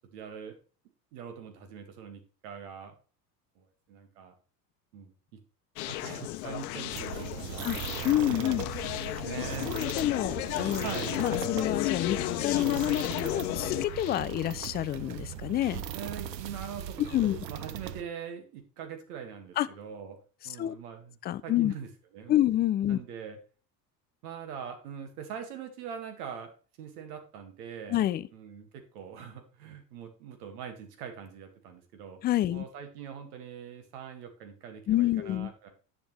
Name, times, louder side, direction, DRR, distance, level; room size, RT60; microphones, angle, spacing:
voice 1, 0.1-0.6 1.1-2.9 3.6-4.3 4.9-5.1 5.9-7.9 8.3-9.7 10.8-11.1 15.9-20.2 20.4-21.2 21.4-22.4 22.9-23.4 24.2-26.5 26.8-28.0 28.3-32.2 32.5-35.7, right 7 dB, 65° right, 2.2 m, -43 dB
Conversation, 5.8-14.2, left 16 dB, 60° left, 0.9 m, -34 dB
sound 1, 6.9-18.0, right 10 dB, 85° right, 0.8 m, -39 dB
voice 2, 8.0-8.7 9.7-10.9 11.2-15.8 17.1-17.4 19.6-19.7 20.6-20.7 21.2-21.7 22.3-23.0 27.9-28.3 32.2-32.6 34.9-35.5, left 13 dB, 20° left, 0.4 m, -28 dB
9.5 x 6.9 x 3.3 m
hypercardioid pair, 80°, 48 cm